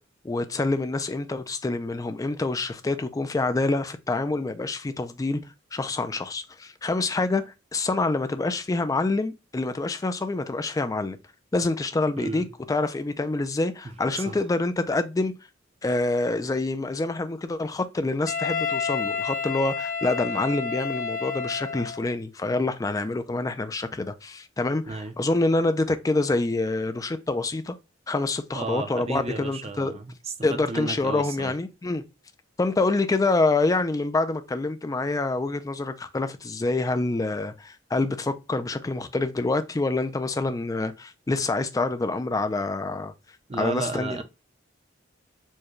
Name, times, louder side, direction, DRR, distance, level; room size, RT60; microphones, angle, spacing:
voice 1, 0.2-5.4 5.7-11.2 11.5-15.3 15.8-27.7 28.1-29.9 30.4-32.0 32.6-43.1 43.6-44.2, left 2 dB, 20° left, 0.3 m, -26 dB
voice 2, 12.2-12.5 14.3-14.4 24.9-25.1 28.5-31.5 43.5-44.2, right 3 dB, 30° right, 0.5 m, -33 dB
Wind instrument woodwind instrument, 18.3-22.1, left 5 dB, 45° left, 0.8 m, -30 dB
4.5 x 2.2 x 2.9 m
head